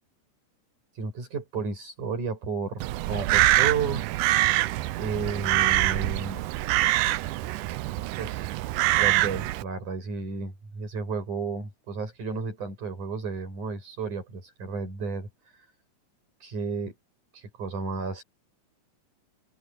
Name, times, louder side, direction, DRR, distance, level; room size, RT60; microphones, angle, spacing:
voice 1, 0.9-4.1 5.0-6.4 8.2-8.5 9.0-15.7 16.4-16.9 17.3-18.2, right 4 dB, 65° right, 8.9 m, -33 dB
Crow, 2.8-9.6, right 16 dB, 85° right, 2.2 m, -25 dB
omnidirectional pair, 3.8 m